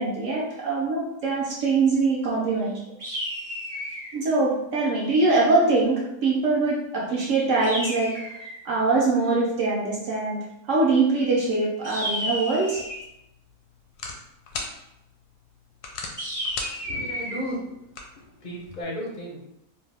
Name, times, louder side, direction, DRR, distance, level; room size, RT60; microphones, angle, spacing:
voice 1, 0.0-3.0 4.1-8.1 8.7-10.4 10.7-12.8, right 3 dB, 65° right, -4 dB, 0.8 m, -23 dB
sound 1, 3.0-4.2 7.6-8.6 11.8-13.1 16.2-17.4, equal, 20° right, 0.5 m, -32 dB
sound 2, 12.7-18.8, left 3 dB, 80° left, 1.1 m, -40 dB
voice 2, 16.8-17.6 18.4-19.4, equal, 55° left, -4 dB, 0.5 m, -33 dB
2.7 x 2.2 x 3.2 m, 0.84 s
omnidirectional pair, 1.7 m